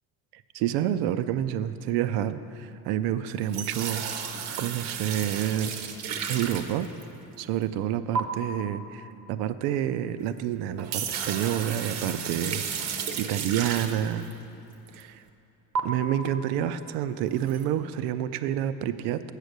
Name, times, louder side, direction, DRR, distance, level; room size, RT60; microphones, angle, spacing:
voice 1, 0.3-4.0 4.6-5.8 6.3-6.9 7.4-14.3 14.9-15.2 15.8-19.2, right 11 dB, 90° right, 12 dB, 0.5 m, -28 dB
sound 1, 3.4-7.3 8.2-8.3 10.2-10.3 10.7-14.3 14.9-15.0 15.8-15.9 17.4-17.6, right 6 dB, 50° right, 0.7 m, -33 dB
8.1 x 6.5 x 6.6 m, 2.8 s
cardioid pair, 155°, 37 cm